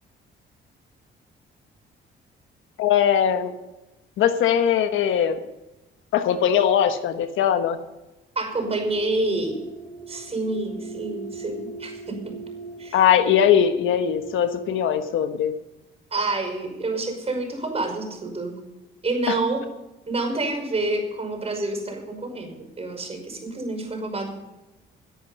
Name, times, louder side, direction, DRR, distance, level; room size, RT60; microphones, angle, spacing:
voice 1, 2.8-3.5 4.2-5.4 6.1-7.8 12.9-15.5 19.3-19.4, left 9 dB, 85° left, 9 dB, 1.3 m, -20 dB
voice 2, 8.4-9.6 10.1-12.4 12.8-13.0 16.1-18.6 19.0-19.7 20.1-24.4, right 2 dB, 30° right, 5 dB, 5.4 m, -28 dB
sound 1, 8.5-14.9, right 5 dB, 30° left, 6.2 m, -40 dB
18.0 x 10.0 x 5.5 m, 1.0 s
cardioid pair, 90°, 20 cm